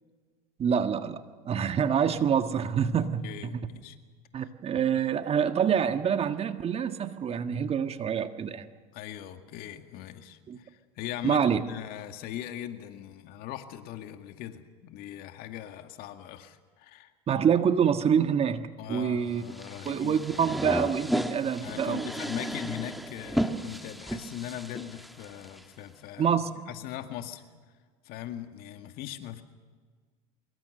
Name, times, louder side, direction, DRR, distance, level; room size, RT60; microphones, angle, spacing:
voice 1, 0.6-3.5 4.3-8.6 10.5-10.6 11.2-11.6 17.3-19.4 19.8-22.1 26.2-26.6, right 7 dB, 35° right, 8 dB, 1.6 m, -26 dB
voice 2, 3.0-4.0 4.4-4.5 4.9-5.1 8.9-17.1 18.8-20.5 21.6-26.3 26.7-27.4 28.0-29.4, left 12 dB, 55° left, 7 dB, 2.1 m, -40 dB
sound 1, 19.5-25.6, equal, ahead, 1.5 m, -33 dB
25.0 x 22.5 x 6.7 m, 1.5 s
hypercardioid pair, 90°, 18 cm